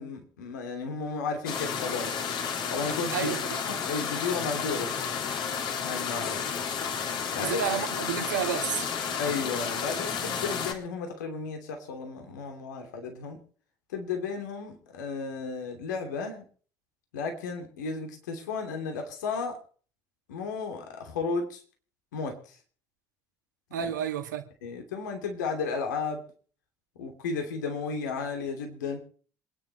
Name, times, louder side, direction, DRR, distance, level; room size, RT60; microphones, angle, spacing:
voice 1, 0.0-2.1 2.7-3.3 3.7-4.9 5.8-6.4 7.3-7.6 9.2-13.4 13.9-16.4 17.1-19.6 20.3-21.6 22.1-22.6 23.8-23.9 24.6-26.2 27.0-29.0, left 4 dB, 75° left, 2.9 m, -33 dB
sound 1, 1.5-10.7, left 6 dB, 50° left, 2.9 m, -32 dB
voice 2, 3.1-3.6 7.4-8.9 23.7-24.5, right 8 dB, 80° right, 1.8 m, -31 dB
27.0 x 10.0 x 3.2 m
figure-of-eight pair, 60°, 10 cm